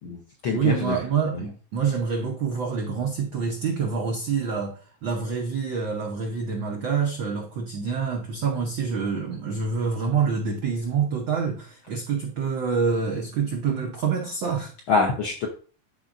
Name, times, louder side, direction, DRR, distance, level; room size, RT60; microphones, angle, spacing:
voice 1, 0.0-1.0 1.3-1.4 14.9-15.5, left 4 dB, 70° left, 1 dB, 1.2 m, -25 dB
voice 2, 0.5-14.7, right 6 dB, 80° right, 1 dB, 1.0 m, -27 dB
11.5 x 4.5 x 2.5 m, 0.39 s
omnidirectional pair, 3.3 m